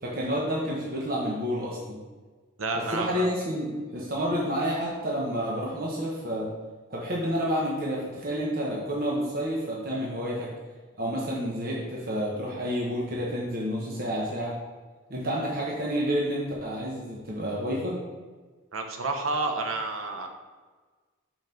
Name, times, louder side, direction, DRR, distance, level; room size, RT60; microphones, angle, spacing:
voice 1, 0.0-2.0 2.7-6.5 6.9-10.5 11.0-14.6 15.1-18.0, equal, 45° right, -4 dB, 1.1 m, -29 dB
voice 2, 2.6-3.3 18.7-20.3, right 3 dB, 90° right, 4 dB, 0.9 m, -30 dB
5.6 x 4.6 x 5.8 m, 1.4 s
head